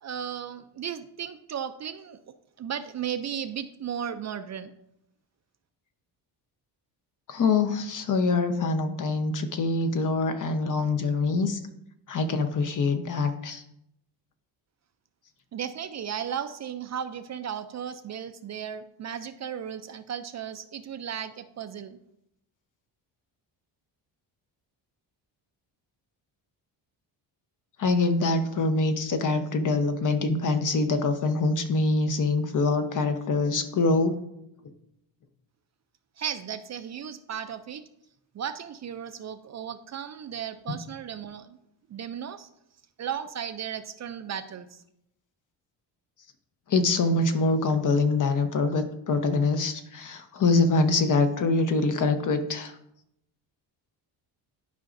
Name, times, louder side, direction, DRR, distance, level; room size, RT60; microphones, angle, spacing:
voice 1, 0.0-2.2 2.6-4.7 15.5-22.0 36.2-37.8 38.4-41.5 41.9-42.5 43.0-44.7, right 8 dB, 40° right, 10 dB, 0.4 m, -35 dB
voice 2, 7.3-11.6 12.1-13.6 27.8-34.1 40.7-40.8 46.7-52.7, left 3 dB, 45° left, 7 dB, 0.8 m, -24 dB
11.5 x 5.0 x 2.5 m, 0.79 s
cardioid pair, 120°, 43 cm